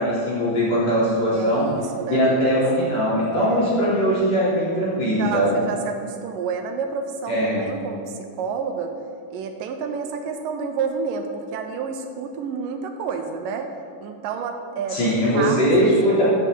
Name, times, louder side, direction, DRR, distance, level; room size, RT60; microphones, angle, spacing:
voice 1, 0.0-1.7 2.1-5.6 7.3-7.6 14.9-16.3, equal, 50° left, -9 dB, 4.3 m, -20 dB
voice 2, 1.3-2.6 3.4-3.7 5.2-9.0 9.3-13.7 14.0-15.0 15.3-16.1, right 5 dB, 80° right, 6 dB, 2.3 m, -30 dB
14.0 x 8.4 x 3.9 m, 2.3 s
omnidirectional pair, 3.9 m